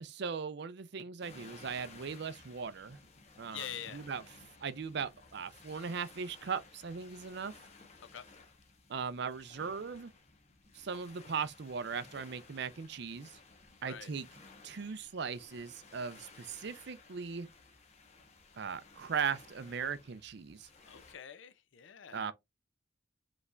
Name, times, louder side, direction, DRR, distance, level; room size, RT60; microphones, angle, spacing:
voice 1, 0.0-3.0 3.4-3.7 3.9-4.2 4.6-7.5 8.9-10.1 10.7-13.3 13.8-14.3 14.6-17.5 18.6-20.7 22.1-22.3, right 6 dB, 55° right, 0.5 m, -38 dB
sound 1, 1.2-21.1, left 4 dB, 35° left, 1.1 m, -57 dB
voice 2, 3.5-4.1 8.1-8.3 13.8-14.1 20.9-22.3, left 9 dB, 70° left, 0.5 m, -45 dB
5.1 x 3.4 x 2.4 m
head